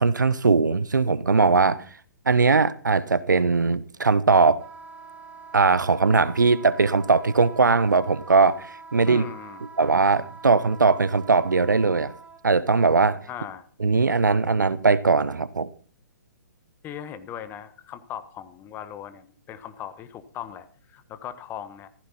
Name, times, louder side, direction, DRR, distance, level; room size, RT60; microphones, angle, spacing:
voice 1, 0.0-1.8 2.3-4.6 5.5-8.7 8.9-9.2 9.8-12.1 12.4-13.2 13.8-15.7, right 4 dB, 80° right, 1.1 m, -20 dB
Wind instrument woodwind instrument, 4.5-12.4, right 5 dB, 15° right, 2.9 m, -45 dB
voice 2, 9.1-9.7 13.3-13.7 16.8-21.9, left 9 dB, 20° left, 1.3 m, -39 dB
15.0 x 15.0 x 4.3 m
figure-of-eight pair, 125°, 10 cm